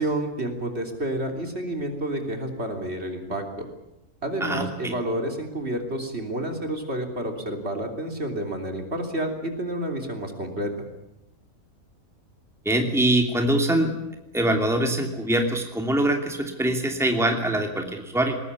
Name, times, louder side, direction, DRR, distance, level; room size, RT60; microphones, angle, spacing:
voice 1, 0.0-3.7 4.2-10.7, right 1 dB, 45° right, 4 dB, 3.5 m, -29 dB
voice 2, 4.4-4.9 12.6-14.0 14.3-18.4, right 1 dB, ahead, 3 dB, 2.7 m, -23 dB
21.0 x 20.0 x 9.7 m, 0.90 s
omnidirectional pair, 1.5 m